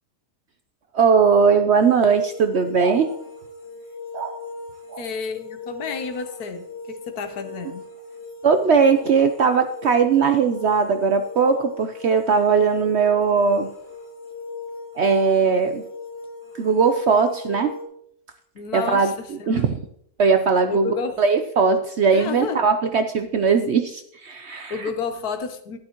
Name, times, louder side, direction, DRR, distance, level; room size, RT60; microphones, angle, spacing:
voice 1, 0.9-3.2 4.1-4.4 4.9-5.0 8.4-13.7 15.0-15.8 16.6-17.7 18.7-19.1 19.5-19.8 20.2-24.9, right 5 dB, 60° right, 7 dB, 0.7 m, -19 dB
sound 1, 1.8-17.8, left 3 dB, 50° left, 2.6 m, -39 dB
voice 2, 5.0-7.8 18.5-19.7 20.7-21.2 22.1-22.7 24.7-25.8, left 5 dB, 70° left, 8 dB, 1.4 m, -31 dB
12.0 x 11.0 x 3.0 m, 0.70 s
omnidirectional pair, 1.7 m